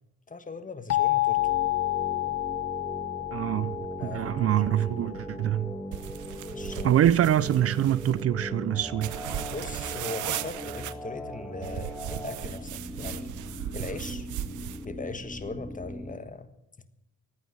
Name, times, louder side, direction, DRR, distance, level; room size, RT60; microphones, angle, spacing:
voice 1, 0.3-1.6 4.0-4.7 6.5-7.1 9.3-13.3 13.7-14.3 14.8-16.5, left 3 dB, 25° left, 1.5 m, -39 dB
sound 1, 0.9-5.6, left 17 dB, 60° left, 1.2 m, -29 dB
sound 2, 1.4-16.1, equal, 5° left, 2.7 m, -39 dB
voice 2, 3.3-5.8 6.8-9.1, right 11 dB, 50° right, 0.5 m, -25 dB
sound 3, 5.9-8.2 9.0-10.9 11.6-14.8, right 13 dB, 80° right, 0.8 m, -37 dB
15.5 x 9.6 x 9.3 m
cardioid pair, 90°, 30 cm